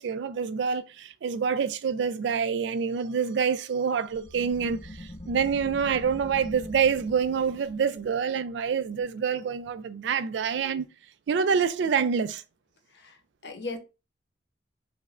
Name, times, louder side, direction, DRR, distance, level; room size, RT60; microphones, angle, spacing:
voice 1, 0.0-10.9 11.3-12.4, right 6 dB, 80° right, 0.3 m, -27 dB
sound 1, 4.2-9.4, left 1 dB, 25° left, 0.4 m, -44 dB
voice 2, 12.9-13.8, left 3 dB, 70° left, 0.7 m, -38 dB
5.0 x 2.1 x 2.4 m
head